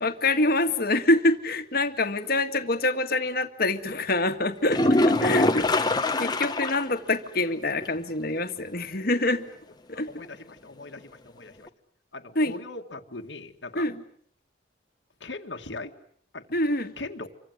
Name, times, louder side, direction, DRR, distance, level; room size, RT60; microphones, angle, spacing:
voice 1, 0.0-5.9 6.2-9.4 9.9-10.1 12.4-12.5 13.8-14.0 16.5-16.9, left 2 dB, 55° left, 7 dB, 2.0 m, -25 dB
sound 1, 4.7-6.9 7.3-7.4 7.8-7.9 11.7-11.8, left 2 dB, 20° left, 1.3 m, -23 dB
voice 2, 9.9-11.7 12.1-13.9 15.2-15.9 16.3-16.5 17.0-17.3, left 3 dB, 70° left, 4 dB, 2.1 m, -39 dB
27.5 x 25.0 x 8.0 m, 0.63 s
head